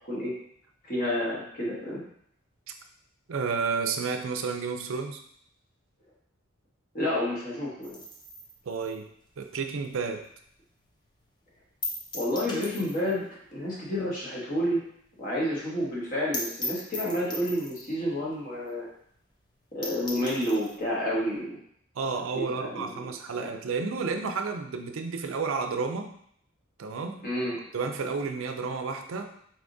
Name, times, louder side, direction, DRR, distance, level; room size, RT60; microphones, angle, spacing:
voice 1, 0.8-2.0 6.9-8.0 12.1-14.8 15.2-18.9 19.7-21.6 22.3-22.9 23.3-23.4 27.2-27.6, equal, 45° left, -6 dB, 1.2 m, -30 dB
voice 2, 3.3-5.2 8.7-9.1 9.4-10.2 22.0-26.1 26.8-27.2 27.7-29.3, right 4 dB, 75° right, 6 dB, 0.4 m, -31 dB
sound 1, 7.8-10.5 10.8-10.9 11.2-11.3 11.8-13.2 13.5-13.6 13.9-14.0 14.4-14.5 14.7-14.8 15.1-15.2 15.5-15.6 16.0-16.1 16.3-18.0 18.7-18.8 19.1-19.2 19.5-19.6 19.8-20.8, left 2 dB, 20° left, 0.5 m, -38 dB
4.0 x 3.5 x 2.6 m, 0.69 s
head